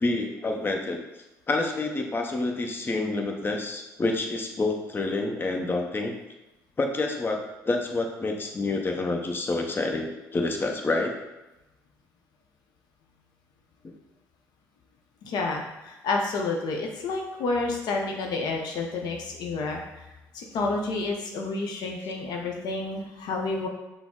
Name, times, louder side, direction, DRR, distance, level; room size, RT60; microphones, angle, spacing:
voice 1, 0.0-1.0 1.5-6.1 6.8-11.1, left 2 dB, 30° left, 2 dB, 0.7 m, -28 dB
voice 2, 15.2-20.0 20.3-23.7, left 3 dB, 65° left, 1 dB, 0.6 m, -30 dB
5.8 x 2.0 x 3.7 m, 0.99 s
hypercardioid pair, 60°, 8 cm